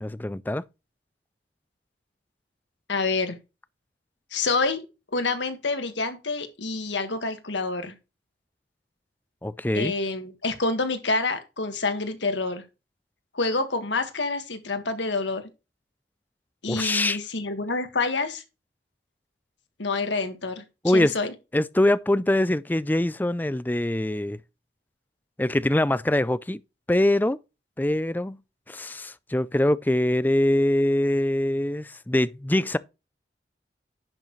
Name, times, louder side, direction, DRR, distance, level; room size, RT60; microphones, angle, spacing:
voice 1, 0.0-0.6 9.4-9.9 16.7-17.2 20.8-21.1 21.5-24.4 25.4-26.6 26.9-27.4 27.8-28.4 28.7-32.8, left 1 dB, 10° left, 0.4 m, -23 dB
voice 2, 2.9-3.4 4.3-4.8 5.1-7.9 9.7-12.6 13.3-15.4 16.6-18.4 19.8-21.3, left 3 dB, 90° left, 1.7 m, -27 dB
10.5 x 6.5 x 3.1 m
head